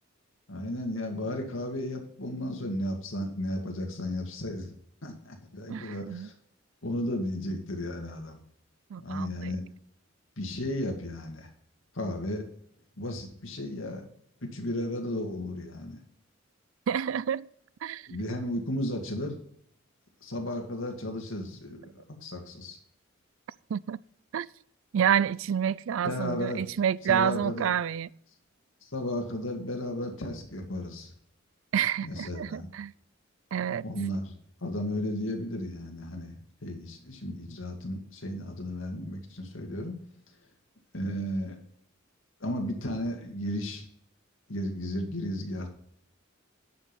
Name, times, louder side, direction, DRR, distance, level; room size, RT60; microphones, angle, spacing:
voice 1, 0.5-4.7 5.0-6.3 6.8-8.4 9.0-9.6 10.4-11.5 12.0-12.5 13.0-14.0 14.4-16.0 18.1-19.4 20.2-22.8 26.0-26.6 27.1-27.7 28.9-31.1 32.0-32.7 33.8-34.3 34.6-40.0 40.9-41.6 42.4-43.8 44.5-45.7, left 1 dB, 80° left, 2.3 m, -34 dB
voice 2, 5.7-6.3 8.9-9.5 16.9-17.5 17.8-18.3 23.7-24.0 24.3-24.5 24.9-28.1 31.7-32.9 33.5-33.8, right 8 dB, 85° right, 0.4 m, -28 dB
10.5 x 6.3 x 5.3 m
head